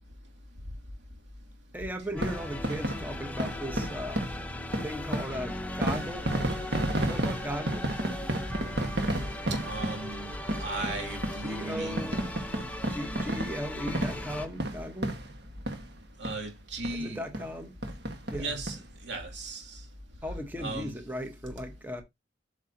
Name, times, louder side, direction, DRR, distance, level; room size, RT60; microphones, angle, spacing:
voice 1, 1.7-4.2 4.8-6.3 7.0-7.9 11.4-12.2 12.9-15.1 17.0-17.7 18.3-18.5 20.2-22.0, equal, 10° right, 1.3 m, -37 dB
sound 1, 2.1-16.0 16.2-16.4 16.8-16.9 17.3-17.5 17.8-18.8 19.2-19.3 19.5-19.6, right 1 dB, 65° right, 1.6 m, -33 dB
sound 2, 2.2-14.5, left 1 dB, 10° left, 0.9 m, -38 dB
voice 2, 9.5-12.1 16.2-17.2 18.4-18.8 19.0-19.6 20.6-20.9, right 2 dB, 85° right, 2.7 m, -36 dB
8.1 x 6.4 x 2.9 m
head